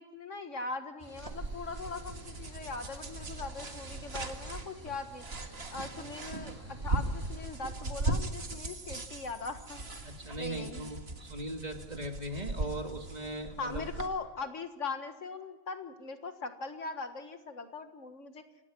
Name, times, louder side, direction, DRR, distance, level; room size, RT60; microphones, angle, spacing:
voice 1, 0.0-5.3 5.7-9.9 10.4-10.8 13.6-18.4, left 4 dB, 65° left, 8 dB, 1.9 m, -40 dB
sound 1, 1.0-7.5, right 1 dB, 15° right, 2.5 m, -53 dB
sound 2, 1.2-14.1, right 2 dB, 50° right, 2.0 m, -38 dB
voice 2, 10.0-13.8, right 1 dB, 30° right, 4 dB, 2.3 m, -39 dB
27.5 x 17.5 x 6.1 m, 1.2 s
omnidirectional pair, 1.4 m